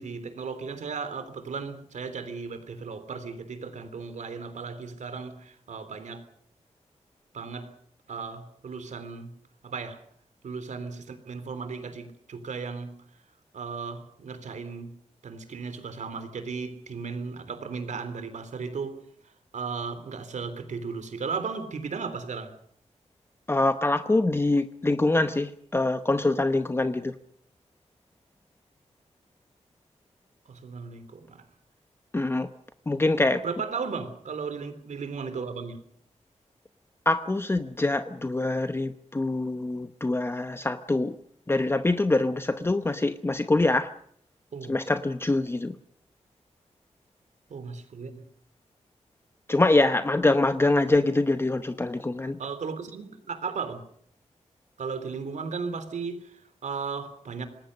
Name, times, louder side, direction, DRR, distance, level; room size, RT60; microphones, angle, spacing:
voice 1, 0.0-6.3 7.3-7.7 8.1-9.4 9.6-10.0 10.4-13.0 13.5-15.0 15.2-22.5 30.5-31.4 33.3-35.9 44.5-44.8 47.5-48.3 52.4-53.8 54.8-57.5, right 5 dB, 90° right, 3.5 m, -36 dB
voice 2, 23.5-27.1 32.1-32.5 32.9-33.4 37.1-41.2 41.5-43.9 44.7-45.7 49.5-52.4, left 2 dB, 20° left, 0.8 m, -24 dB
26.5 x 20.0 x 6.6 m
wide cardioid pair, 145°, 12 cm